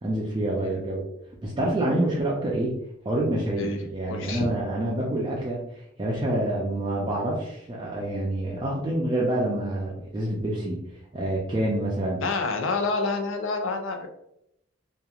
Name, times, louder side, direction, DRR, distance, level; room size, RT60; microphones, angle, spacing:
voice 1, 0.0-1.1 1.4-2.8 3.0-10.8 11.1-12.2, right 1 dB, 25° right, -4 dB, 0.4 m, -27 dB
voice 2, 4.1-4.5 12.2-14.1, left 3 dB, 75° left, 5 dB, 0.5 m, -28 dB
2.9 x 2.3 x 2.3 m, 0.78 s
head